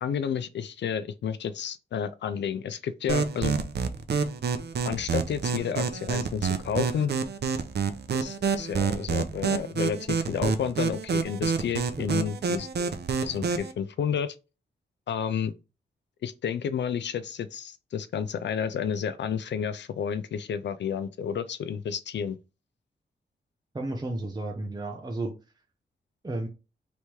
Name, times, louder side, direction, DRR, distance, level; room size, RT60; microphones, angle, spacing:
voice 1, 0.0-3.5 4.8-7.1 8.1-12.9 13.2-14.4 15.1-15.5 16.2-22.4, left 7 dB, 75° left, 0.4 m, -31 dB
sound 1, 3.1-13.7, right 5 dB, 65° right, 0.6 m, -28 dB
voice 2, 12.0-12.3 23.7-25.4 26.2-26.5, right 2 dB, 20° right, 0.7 m, -33 dB
3.3 x 3.1 x 4.4 m
wide cardioid pair, 90°, 18 cm